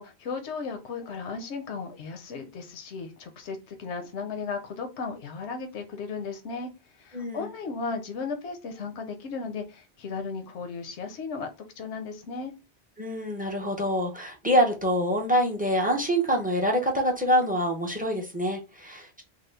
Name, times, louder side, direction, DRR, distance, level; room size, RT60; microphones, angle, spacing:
voice 1, 0.0-6.7 7.0-11.5 11.8-12.5, left 4 dB, 85° left, 6 dB, 0.9 m, -35 dB
voice 2, 7.1-7.5 13.0-19.2, equal, 10° right, 2 dB, 0.4 m, -25 dB
3.6 x 2.0 x 3.3 m, 0.27 s
omnidirectional pair, 1.1 m